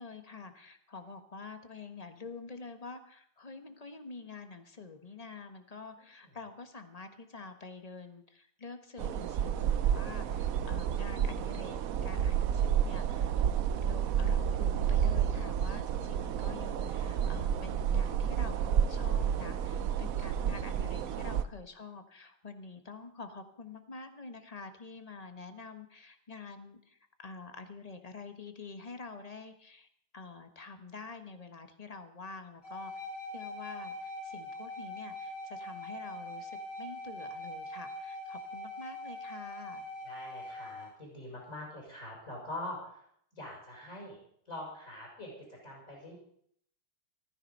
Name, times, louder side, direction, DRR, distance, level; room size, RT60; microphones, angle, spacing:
voice 1, 0.0-29.9 30.1-32.9 33.3-39.9, left 4 dB, 25° left, 8 dB, 1.0 m, -47 dB
sound 1, 9.0-21.4, right 8 dB, 65° right, 0.8 m, -30 dB
sound 2, 32.6-40.9, left 1 dB, 55° left, 7.8 m, -42 dB
voice 2, 40.0-43.1 43.3-44.2 44.5-46.2, left 1 dB, 40° left, -3 dB, 6.0 m, -44 dB
15.0 x 13.5 x 5.4 m, 0.66 s
omnidirectional pair, 2.3 m